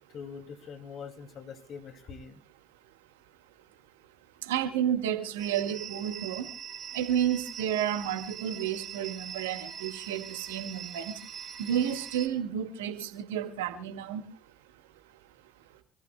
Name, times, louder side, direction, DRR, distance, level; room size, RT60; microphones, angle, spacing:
voice 1, 0.1-2.4, left 6 dB, 55° left, 7 dB, 2.4 m, -43 dB
voice 2, 4.4-6.5 6.9-11.1 11.6-14.2, right 10 dB, 85° right, 6 dB, 2.0 m, -31 dB
sound 1, 5.4-12.3, right 8 dB, 45° right, 3.5 m, -42 dB
28.0 x 14.5 x 2.2 m, 0.32 s
hypercardioid pair, 65°, 0 cm